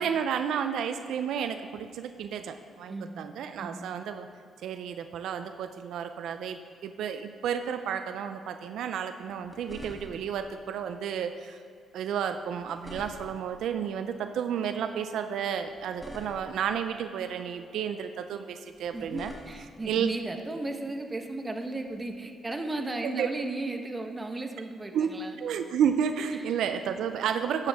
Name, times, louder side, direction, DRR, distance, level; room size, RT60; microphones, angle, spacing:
voice 1, 0.0-4.3 4.6-11.6 11.9-19.3 19.9-20.1 23.0-23.3 24.9-25.1 25.4-27.7, right 8 dB, 80° right, 8 dB, 0.5 m, -31 dB
voice 2, 2.9-3.2 3.6-3.8 18.9-25.4 26.3-26.5, right 2 dB, 20° right, 5 dB, 1.1 m, -35 dB
sound 1, 9.2-10.4 12.4-13.6 15.5-16.7 18.7-19.9 21.9-22.0, equal, 5° left, 1.8 m, -47 dB
12.0 x 10.0 x 3.6 m, 2.5 s
cardioid pair, 90°, 0 cm